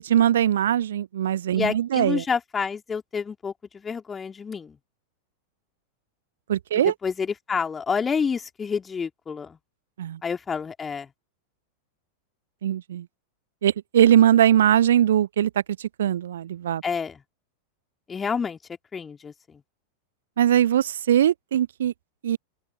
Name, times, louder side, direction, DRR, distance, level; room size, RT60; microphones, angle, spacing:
voice 1, 0.0-2.2 6.5-6.9 10.0-10.2 12.6-13.1 13.6-15.5 15.8-16.8 20.4-21.9 22.2-22.4, right 10 dB, 60° right, 0.4 m, -21 dB
voice 2, 1.5-4.7 7.0-9.6 10.2-11.1 16.8-17.2 18.1-18.6 18.9-19.3, left 6 dB, 15° left, 3.2 m, -28 dB
figure-of-eight pair, 90°, 0 cm